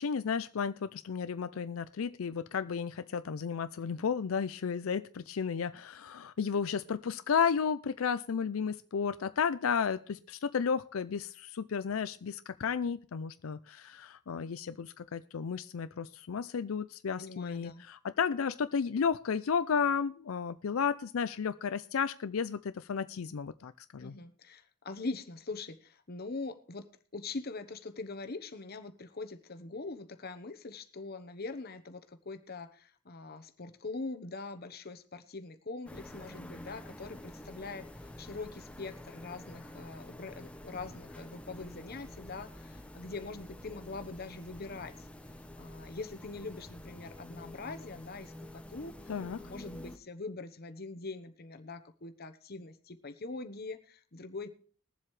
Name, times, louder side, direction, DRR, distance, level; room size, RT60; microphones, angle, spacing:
voice 1, 0.0-24.1 49.1-49.4, left 6 dB, 90° left, 12 dB, 0.5 m, -33 dB
voice 2, 17.2-17.8 24.0-26.9 27.1-44.9 45.6-54.5, left 3 dB, 50° left, 9 dB, 1.0 m, -43 dB
sound 1, 35.9-50.0, left 1 dB, 5° left, 0.8 m, -48 dB
21.0 x 7.5 x 3.2 m, 0.43 s
head